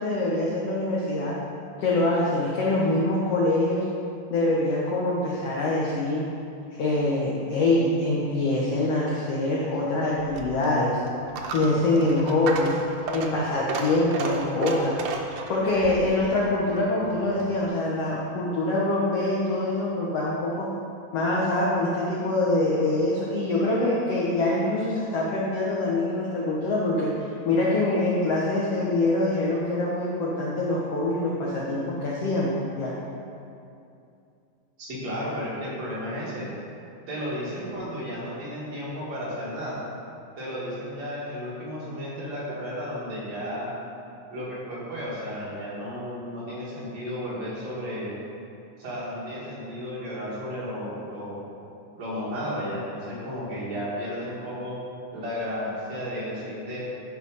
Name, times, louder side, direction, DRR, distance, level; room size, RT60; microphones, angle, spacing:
voice 1, 0.0-1.3 1.8-3.8 4.3-6.2 6.8-11.0 11.5-12.7 13.1-15.0 15.5-20.7 21.1-27.1 27.4-33.0, left 2 dB, 70° left, -5 dB, 1.5 m, -24 dB
Coin (dropping), 10.2-17.7, right 4 dB, 85° right, 1.5 m, -34 dB
voice 2, 34.8-36.5 37.1-39.8 40.4-43.7 44.3-48.1 48.8-51.4 51.9-54.8 55.1-56.9, equal, 55° right, -7 dB, 2.9 m, -33 dB
11.0 x 4.6 x 5.4 m, 2.6 s
omnidirectional pair, 4.0 m